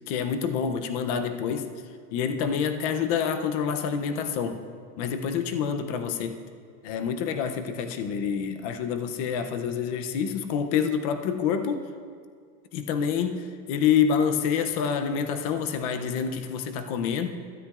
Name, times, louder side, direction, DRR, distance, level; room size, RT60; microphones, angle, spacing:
voice 1, 0.1-1.7 2.1-4.6 5.0-6.4 6.8-11.9 12.7-17.3, left 7 dB, 25° left, 8 dB, 0.4 m, -27 dB
21.0 x 13.0 x 2.3 m, 2.1 s
supercardioid pair, 155°, 49 cm